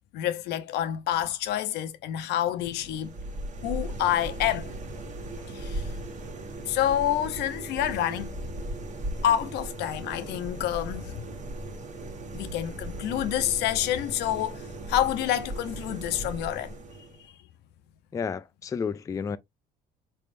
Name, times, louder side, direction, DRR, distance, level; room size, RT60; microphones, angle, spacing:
voice 1, 0.1-3.2 3.6-4.7 5.4-5.9 6.7-8.3 9.2-11.3 12.3-16.8, left 11 dB, 80° left, 0.6 m, -28 dB
sound 1, 2.6-17.3, right 1 dB, 45° right, 1.3 m, -37 dB
voice 2, 18.1-19.4, left 6 dB, 20° left, 0.3 m, -31 dB
4.4 x 3.4 x 2.5 m
cardioid pair, 110°, 17 cm